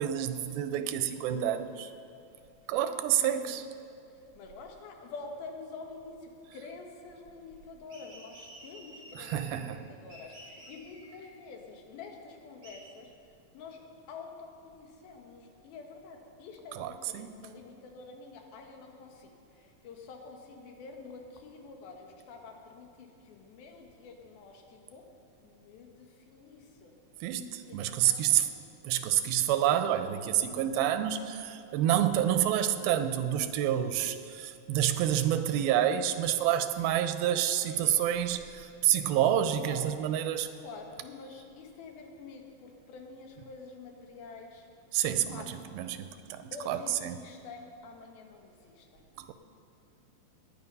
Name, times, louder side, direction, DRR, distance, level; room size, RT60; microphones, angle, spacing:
voice 1, 0.0-1.9 2.7-3.6 9.2-9.8 16.8-17.3 27.2-28.5 28.8-40.5 44.9-46.1 46.3-47.2 49.2-49.3, right 11 dB, 90° right, 10 dB, 2.6 m, -28 dB
voice 2, 3.2-3.5 4.4-13.1 13.5-13.8 14.1-25.0 25.4-26.9 27.6-28.5 37.6-38.0 39.6-39.8 40.6-44.7 45.3-45.8 46.5-49.1, left 4 dB, 85° left, 2 dB, 3.2 m, -48 dB
sound 1, 7.9-9.8 10.1-11.3 12.6-12.7, equal, 30° right, 4.7 m, -51 dB
19.0 x 9.9 x 5.4 m, 2.6 s
omnidirectional pair, 4.2 m